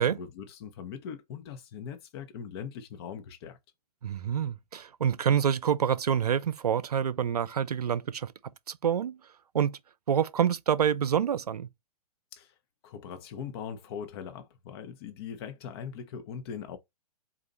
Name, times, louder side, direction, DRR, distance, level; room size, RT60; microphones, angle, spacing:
voice 1, 0.0-3.6 12.3-12.5 12.8-16.8, left 7 dB, 40° left, 1.0 m, -41 dB
voice 2, 4.0-8.3 8.7-9.2 9.5-9.7 10.1-11.7, right 8 dB, 80° right, 0.4 m, -27 dB
4.2 x 2.5 x 4.1 m
figure-of-eight pair, 110°, 20 cm